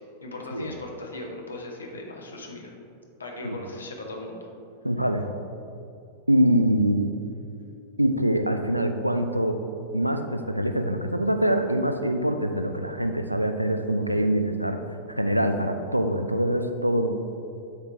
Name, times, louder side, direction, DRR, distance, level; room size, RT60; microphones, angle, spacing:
voice 1, 0.2-2.7 3.2-4.5, left 2 dB, 75° left, 1 dB, 0.9 m, -38 dB
voice 2, 4.8-5.2 6.3-7.1 8.0-9.6 9.9-14.8 15.2-17.1, right 1 dB, 90° right, 6 dB, 0.4 m, -24 dB
8.0 x 3.3 x 4.5 m, 2.5 s
figure-of-eight pair, 90°, 0 cm